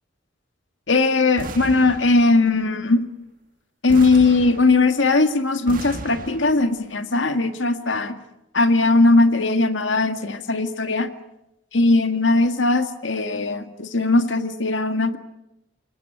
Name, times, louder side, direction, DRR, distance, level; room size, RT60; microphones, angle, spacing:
voice 1, 0.9-3.1 3.8-8.2 8.5-11.1 11.7-15.2, left 3 dB, 70° left, 8 dB, 1.9 m, -19 dB
sound 1, 1.4-2.6 3.9-5.2 5.7-6.8, right 1 dB, 45° right, 1.9 m, -35 dB
29.5 x 18.5 x 9.2 m, 0.91 s
head